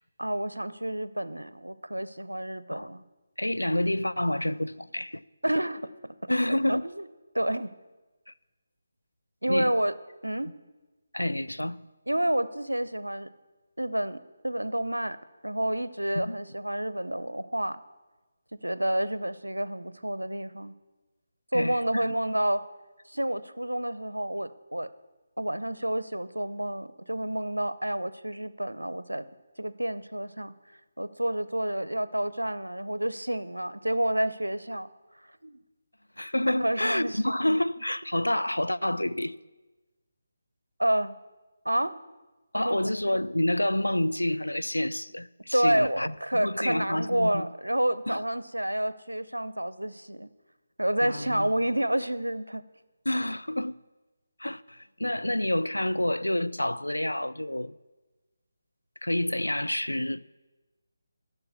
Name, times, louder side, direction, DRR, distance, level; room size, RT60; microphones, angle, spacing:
voice 1, 0.2-3.0 5.4-7.1 7.3-7.7 9.4-9.9 10.2-10.5 12.1-13.3 13.8-14.2 14.4-15.2 15.4-17.8 18.5-20.7 21.5-22.6 23.1-24.9 25.4-29.3 29.6-30.5 31.0-34.9 35.4-35.6 36.6-37.6 40.8-41.2 41.6-42.0 42.5-42.9 45.5-50.3 50.8-52.6, right 1 dB, 80° right, 0.6 m, -29 dB
voice 2, 3.4-5.2 6.3-6.9 8.3-8.4 9.5-9.7 11.1-11.8 16.2-16.3 21.5-22.1 36.2-39.4 42.5-47.5 48.1-48.2 51.0-51.5 53.1-53.8 54.4-57.8 59.0-60.2, left 1 dB, 80° left, 0.4 m, -28 dB
11.5 x 6.8 x 8.4 m
figure-of-eight pair, 150°, 0 cm